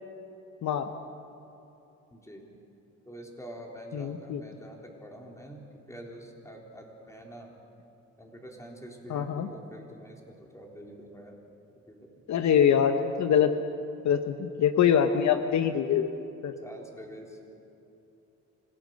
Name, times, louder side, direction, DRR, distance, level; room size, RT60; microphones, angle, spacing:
voice 1, 2.1-2.4 3.1-7.6 8.2-11.4 11.9-12.1 16.6-17.4, right 1 dB, 10° left, 0 dB, 3.9 m, -46 dB
voice 2, 3.9-4.4 9.1-9.5 12.3-13.5 14.0-16.1 16.4-16.5, left 8 dB, 65° left, 8 dB, 1.0 m, -24 dB
26.0 x 17.5 x 6.6 m, 2.9 s
cardioid pair, 90°, 30 cm